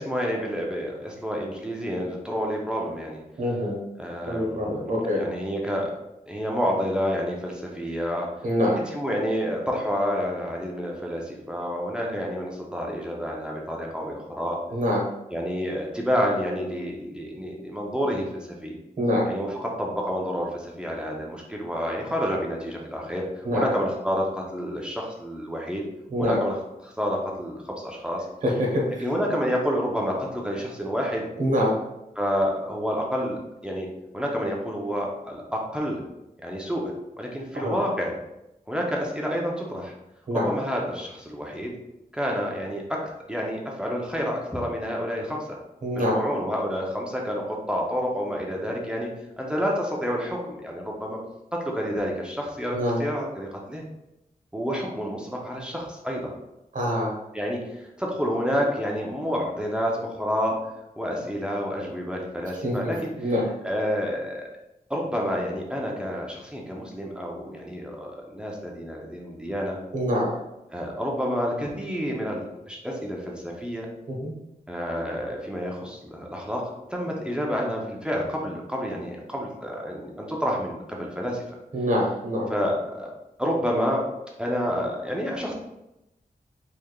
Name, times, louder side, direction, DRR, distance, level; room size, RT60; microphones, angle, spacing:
voice 1, 0.0-3.2 4.0-4.8 5.2-6.0 6.3-8.3 8.7-14.6 15.3-18.8 19.3-25.9 26.2-26.6 26.8-28.3 29.0-31.3 32.2-36.1 36.4-38.2 38.7-39.9 40.3-41.8 42.1-45.6 45.9-51.2 51.5-53.8 54.5-56.3 57.3-63.3 63.6-64.4 64.9-69.8 70.7-73.9 74.7-81.4 82.5-83.1 83.4-84.1 84.4-85.5, equal, 5° right, -2 dB, 0.6 m, -29 dB
voice 2, 3.4-3.8 4.3-5.2 8.4-8.8 14.7-15.0 19.0-19.3 23.4-23.7 26.1-26.4 28.4-29.1 31.4-31.8 37.5-37.8 40.3-40.5 45.8-46.2 52.7-53.0 56.7-57.1 62.6-63.4 69.9-70.3 74.1-74.3 81.7-82.5, equal, 55° right, -2 dB, 1.1 m, -25 dB
3.4 x 3.3 x 2.3 m, 0.90 s
wide cardioid pair, 125°, 15 cm